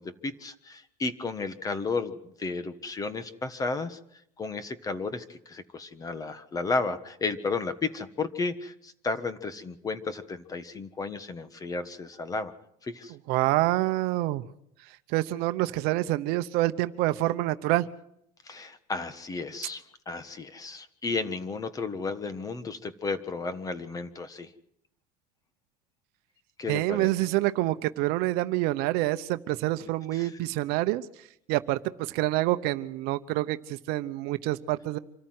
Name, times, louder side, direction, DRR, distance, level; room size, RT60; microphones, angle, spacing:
voice 1, 0.0-4.0 4.4-12.5 12.8-13.1 18.4-24.5 26.6-27.1 30.1-30.3, left 3 dB, 20° left, 12 dB, 1.4 m, -33 dB
voice 2, 13.3-14.4 15.1-17.9 26.7-31.1 31.5-35.0, right 17 dB, 60° right, 12 dB, 0.9 m, -27 dB
26.0 x 14.0 x 7.9 m, 0.75 s
cardioid pair, 140°, 18 cm